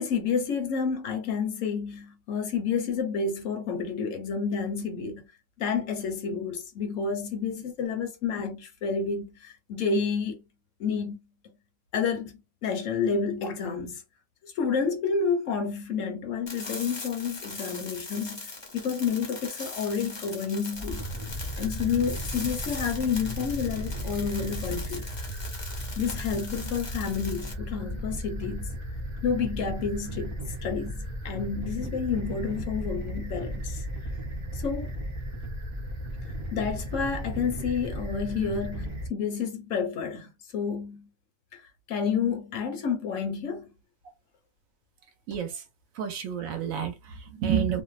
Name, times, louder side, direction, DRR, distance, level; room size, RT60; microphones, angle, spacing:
voice 1, 0.0-5.3 5.6-10.4 10.8-11.2 11.9-12.3 12.6-14.0 14.4-21.1 21.6-25.1 26.0-28.7 29.2-30.3 30.6-33.8 34.5-34.9 36.5-41.1 41.5-41.6 41.9-43.7, left 6 dB, 70° left, 0.9 m, -30 dB
sound 1, 16.5-27.5, left 3 dB, 30° left, 0.5 m, -40 dB
sound 2, 20.7-39.1, equal, 35° right, 0.4 m, -35 dB
voice 2, 46.0-47.8, right 8 dB, 75° right, 1.1 m, -29 dB
2.6 x 2.0 x 2.3 m
omnidirectional pair, 1.5 m